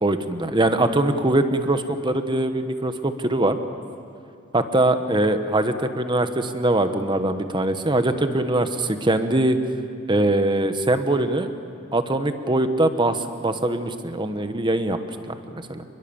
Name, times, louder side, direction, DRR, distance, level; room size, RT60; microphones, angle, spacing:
voice 1, 0.0-3.6 4.5-9.6 10.1-11.5 11.9-15.0 15.5-15.8, right 1 dB, 25° right, 8 dB, 1.2 m, -22 dB
27.5 x 21.5 x 7.2 m, 2.5 s
head